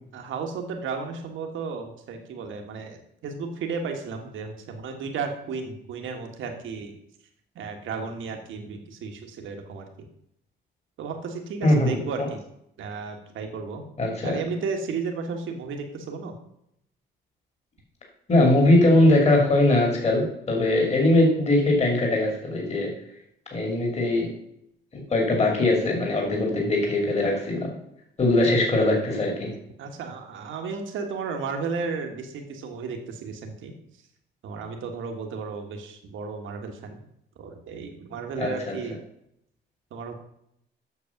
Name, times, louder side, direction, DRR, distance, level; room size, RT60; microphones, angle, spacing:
voice 1, 0.1-7.0 7.5-9.9 11.0-12.4 12.8-13.8 14.2-16.3 28.2-28.3 29.8-33.7 34.4-37.0 37.4-39.0 39.9-40.1, right 5 dB, 80° right, 4 dB, 1.6 m, -33 dB
voice 2, 11.6-12.3 14.0-14.3 18.3-22.9 23.5-24.3 24.9-27.7 28.2-29.5 38.4-38.7, left 1 dB, 35° left, 0 dB, 2.6 m, -21 dB
8.4 x 6.4 x 5.9 m, 0.76 s
cardioid pair, 90°, 20 cm